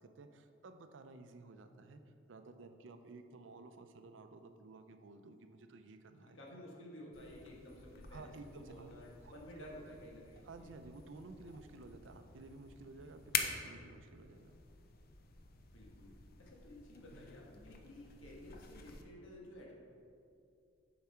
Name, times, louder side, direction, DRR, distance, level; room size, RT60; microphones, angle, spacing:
voice 1, 0.0-6.4 8.1-8.9 9.2-9.7 10.4-14.6 17.1-17.3, right 3 dB, 70° right, 8 dB, 0.5 m, -54 dB
voice 2, 6.2-10.7 15.7-16.1 16.4-19.7, left 1 dB, 85° left, -2 dB, 1.4 m, -53 dB
sound 1, 7.1-19.0, left 7 dB, 50° left, 0.5 m, -47 dB
7.0 x 4.8 x 4.4 m, 2.6 s
head